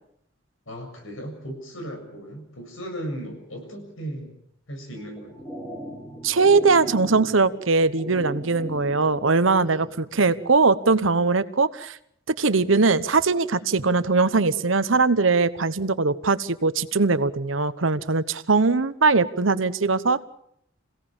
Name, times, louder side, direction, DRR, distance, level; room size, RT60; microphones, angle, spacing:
voice 1, 0.7-4.3 4.7-5.5 9.6-10.3, equal, 85° left, 4 dB, 7.4 m, -37 dB
sound 1, 5.0-10.0, equal, 15° left, 4.4 m, -39 dB
voice 2, 6.2-12.0 12.3-20.2, right 4 dB, 75° right, 14 dB, 1.0 m, -21 dB
27.5 x 17.5 x 7.2 m, 0.71 s
head